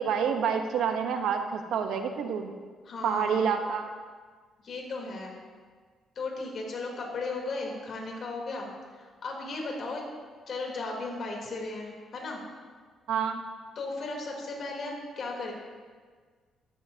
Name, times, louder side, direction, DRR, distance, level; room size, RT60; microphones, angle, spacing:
voice 1, 0.0-2.5 3.0-3.9 13.1-13.4, right 7 dB, 80° right, 6 dB, 1.1 m, -28 dB
voice 2, 2.8-3.4 4.6-5.3 6.2-10.0 10.5-12.4 13.8-15.5, left 3 dB, 55° left, -1 dB, 3.5 m, -36 dB
14.0 x 13.0 x 2.9 m, 1.5 s
cardioid pair, 90°, 0 cm